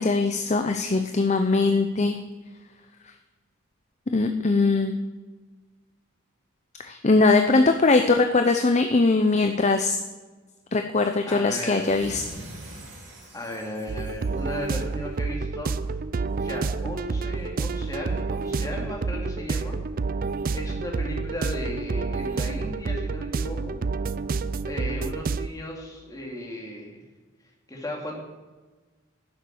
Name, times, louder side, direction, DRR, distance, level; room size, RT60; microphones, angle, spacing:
voice 1, 0.0-2.2 4.1-5.0 6.8-10.0 10.7-12.2, left 3 dB, 35° left, 6 dB, 0.6 m, -21 dB
voice 2, 11.3-11.9 13.3-15.9 16.3-19.8 20.5-23.8 24.6-27.0 27.7-28.2, left 1 dB, 15° left, -1 dB, 2.7 m, -35 dB
sound 1, 11.7-15.0, right 1 dB, 60° right, 4.2 m, -44 dB
sound 2, 13.9-25.5, right 4 dB, 40° right, 0.4 m, -29 dB
11.0 x 7.2 x 6.9 m, 1.3 s
head